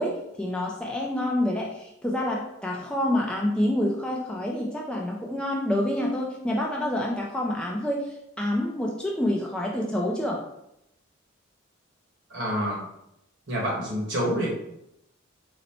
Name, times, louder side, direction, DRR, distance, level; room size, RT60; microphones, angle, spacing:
voice 1, 0.0-10.4, left 1 dB, 5° left, -2 dB, 0.4 m, -27 dB
voice 2, 12.3-12.9 13.5-14.5, equal, 60° right, -3 dB, 1.3 m, -27 dB
3.9 x 2.1 x 4.2 m, 0.81 s
head